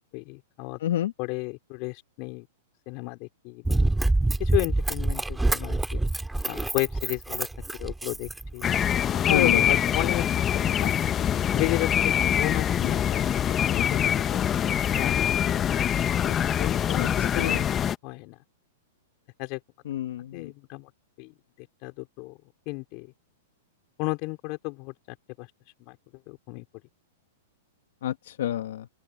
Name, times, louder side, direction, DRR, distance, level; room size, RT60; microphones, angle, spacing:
voice 1, 0.1-0.8 1.2-2.5 2.9-3.9 4.4-6.0 6.5-7.5 7.8-8.7 9.1-10.9 11.5-14.5 15.0-15.8 16.2-17.7 18.0-18.4 19.4-19.6 20.3-20.9 21.2-22.4 22.7-23.1 24.0-25.5 25.8-26.7, left 29 dB, 45° left, 4.0 m, -33 dB
voice 2, 0.8-1.1 9.3-9.6 17.0-17.6 19.9-20.5 28.0-28.9, left 12 dB, 70° left, 1.9 m, -29 dB
Run, 3.7-8.9 9.5-9.6, right 2 dB, 5° right, 3.0 m, -26 dB
sound 1, 8.6-18.0, left 9 dB, 25° left, 1.4 m, -24 dB
open air
hypercardioid pair, 120°, 0 cm